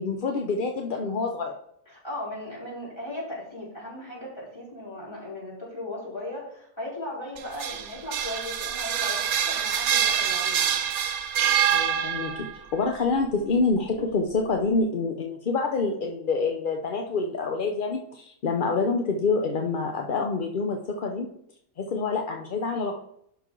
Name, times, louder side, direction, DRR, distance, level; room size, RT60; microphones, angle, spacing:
voice 1, 0.0-1.6 11.7-12.5 12.7-21.3 21.8-23.0, left 4 dB, 50° left, 3 dB, 0.7 m, -27 dB
voice 2, 1.9-11.2, left 1 dB, 20° left, -4 dB, 3.9 m, -37 dB
sound 1, 7.4-12.5, right 9 dB, 80° right, 1.2 m, -25 dB
11.0 x 5.2 x 3.7 m, 0.74 s
omnidirectional pair, 1.5 m